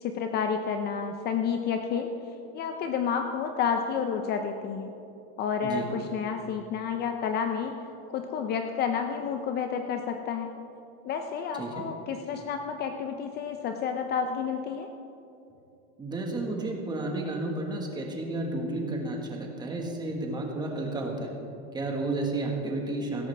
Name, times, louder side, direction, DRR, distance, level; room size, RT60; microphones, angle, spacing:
voice 1, 0.0-2.1 2.5-4.9 5.4-7.8 8.1-10.6 11.0-14.9, left 6 dB, 30° left, 5 dB, 0.6 m, -30 dB
voice 2, 16.0-21.3 21.7-23.3, right 2 dB, 15° right, 1 dB, 1.5 m, -32 dB
16.5 x 13.5 x 3.4 m, 2.7 s
cardioid pair, 165°, 32 cm